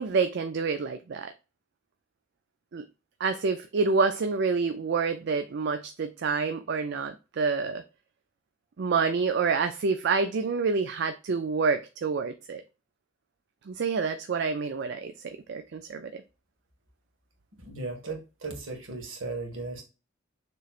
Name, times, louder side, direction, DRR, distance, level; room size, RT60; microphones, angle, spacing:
voice 1, 0.0-1.3 2.7-2.8 3.2-7.8 8.8-12.6 13.7-16.2, right 4 dB, 60° right, 0.4 m, -28 dB
voice 2, 17.6-19.8, right 3 dB, 75° right, 1.7 m, -36 dB
6.6 x 3.1 x 2.4 m
head